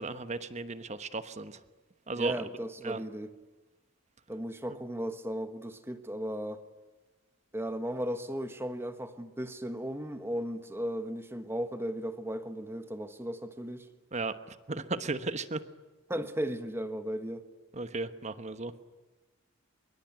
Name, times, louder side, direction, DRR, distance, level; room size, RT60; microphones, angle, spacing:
voice 1, 0.0-1.6 2.1-2.5 2.8-3.0 14.1-15.6 17.7-18.7, right 3 dB, 35° right, 1.1 m, -35 dB
voice 2, 2.2-3.3 4.3-6.6 7.5-13.9 16.1-17.4, equal, 10° right, 1.2 m, -36 dB
24.0 x 22.5 x 9.5 m
head